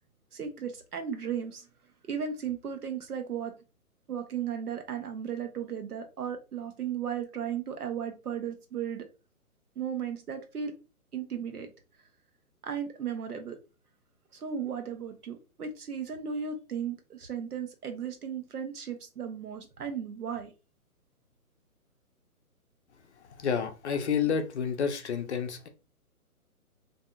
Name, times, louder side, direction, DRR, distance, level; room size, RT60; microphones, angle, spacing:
voice 1, 0.3-1.7 2.1-3.5 4.1-9.1 9.8-10.7 11.1-11.7 12.6-13.6 14.3-20.5, right 7 dB, 85° right, 6 dB, 0.8 m, -35 dB
voice 2, 23.4-25.7, left 7 dB, 50° left, 7 dB, 0.5 m, -29 dB
2.6 x 2.6 x 2.2 m, 0.31 s
figure-of-eight pair, 140°, 44 cm